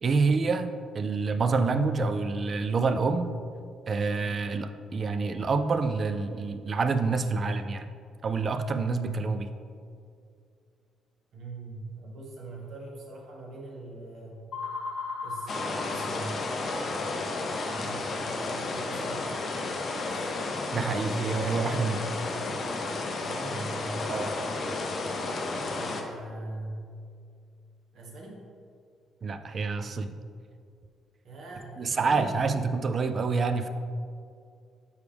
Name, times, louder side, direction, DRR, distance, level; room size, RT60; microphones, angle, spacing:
voice 1, 0.0-3.3 3.9-7.9 8.2-9.5 20.7-22.0 24.1-24.3 29.2-30.2 31.8-33.7, right 4 dB, 35° right, 8 dB, 0.3 m, -27 dB
voice 2, 11.3-14.4 15.2-16.4 17.6-19.3 22.1-22.7 23.1-24.2 25.7-26.9 27.9-28.4 31.2-32.6, right 2 dB, 55° right, -2 dB, 1.2 m, -42 dB
sound 1, 14.5-17.1, left 4 dB, 55° left, 1.5 m, -37 dB
sound 2, 15.5-26.0, left 3 dB, 35° left, 0.6 m, -32 dB
7.0 x 4.7 x 3.4 m, 2.3 s
cardioid pair, 155°, 0 cm